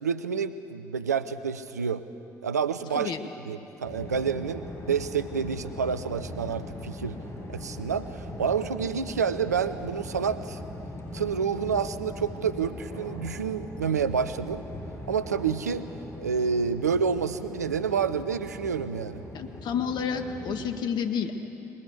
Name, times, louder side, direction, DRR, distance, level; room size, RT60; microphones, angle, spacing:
voice 1, 0.0-2.0 2.4-3.1 3.5-7.1 7.5-10.6 11.1-14.6 15.1-15.9 16.2-19.2, right 6 dB, 85° right, 13 dB, 0.6 m, -28 dB
sound 1, 3.8-20.8, left 1 dB, 30° left, 6.6 m, -40 dB
voice 2, 19.3-21.4, left 7 dB, 55° left, 7 dB, 1.7 m, -30 dB
21.5 x 20.5 x 8.2 m, 2.8 s
figure-of-eight pair, 50°, 9 cm